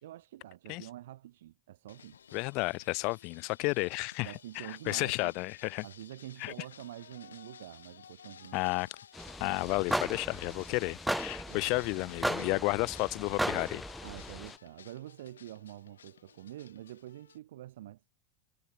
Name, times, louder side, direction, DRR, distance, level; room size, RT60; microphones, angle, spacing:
voice 1, 0.0-2.2 4.2-5.3 5.8-8.7 11.5-11.6 14.0-18.0, right 14 dB, 75° right, 2.1 m, -47 dB
sound 1, 1.9-17.4, left 8 dB, 85° left, 2.6 m, -55 dB
voice 2, 2.3-5.8 6.4-6.5 8.5-8.9 9.4-13.8, left 28 dB, 55° left, 1.2 m, -32 dB
sound 2, 9.1-14.6, left 5 dB, 20° left, 1.0 m, -49 dB
sound 3, 9.2-14.5, right 1 dB, 5° right, 0.3 m, -36 dB
hypercardioid pair, 90°, 0 cm